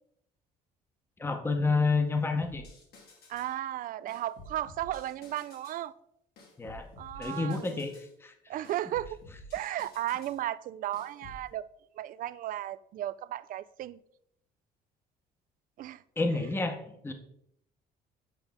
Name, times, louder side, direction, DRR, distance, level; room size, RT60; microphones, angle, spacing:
voice 1, 1.2-2.6 6.6-6.9 7.2-7.9 8.2-8.3 16.2-17.1, left 3 dB, 15° left, 0.9 m, -29 dB
sound 1, 2.4-3.6 4.1-5.8 6.4-8.1 8.6-10.4 10.9-11.4, left 1 dB, 70° left, 2.1 m, -51 dB
voice 2, 3.3-5.9 7.0-7.8 8.5-9.2 9.5-11.7 12.0-14.0 15.8-16.0, right 13 dB, 55° right, 0.4 m, -35 dB
8.2 x 5.3 x 3.5 m
cardioid pair, 110°, 17 cm